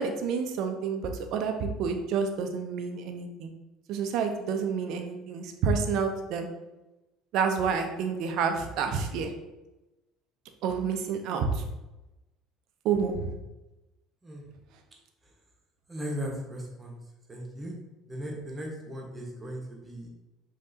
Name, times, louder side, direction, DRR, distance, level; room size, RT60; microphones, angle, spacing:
voice 1, 0.0-3.5 3.9-6.5 7.3-9.3 10.6-11.6 12.8-13.3, right 5 dB, 55° right, 5 dB, 0.5 m, -29 dB
voice 2, 15.9-17.0 17.3-17.7 18.1-20.1, equal, 20° right, 0 dB, 1.1 m, -37 dB
5.2 x 3.2 x 2.7 m, 1.0 s
figure-of-eight pair, 60°, 0 cm